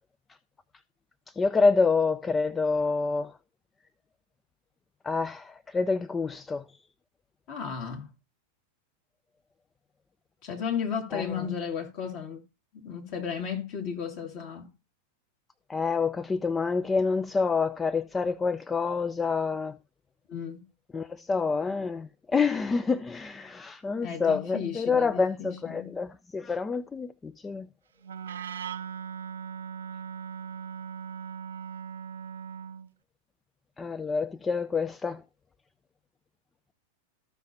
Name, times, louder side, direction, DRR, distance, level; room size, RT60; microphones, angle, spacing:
voice 1, 1.4-3.3 5.0-6.6 11.1-11.2 15.7-19.8 20.9-27.7 33.8-35.2, left 4 dB, 15° left, 0.4 m, -27 dB
voice 2, 7.5-8.1 10.4-12.4 12.7-14.7 20.3-20.6 24.0-25.9, left 7 dB, 45° left, 2.3 m, -34 dB
Wind instrument woodwind instrument, 28.0-32.9, right 7 dB, 65° right, 0.5 m, -39 dB
14.5 x 5.6 x 2.8 m
figure-of-eight pair, 90°, 0 cm